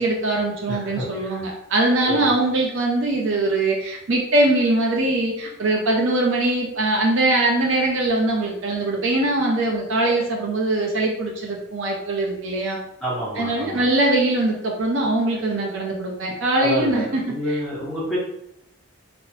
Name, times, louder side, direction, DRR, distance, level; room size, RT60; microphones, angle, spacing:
voice 1, 0.0-12.8 13.4-17.2 17.5-17.6, right 2 dB, 65° right, -1 dB, 0.5 m, -22 dB
voice 2, 0.7-1.4 2.0-2.3 13.0-13.8 16.6-18.2, equal, 5° left, -8 dB, 0.9 m, -28 dB
3.0 x 2.0 x 2.7 m, 0.77 s
head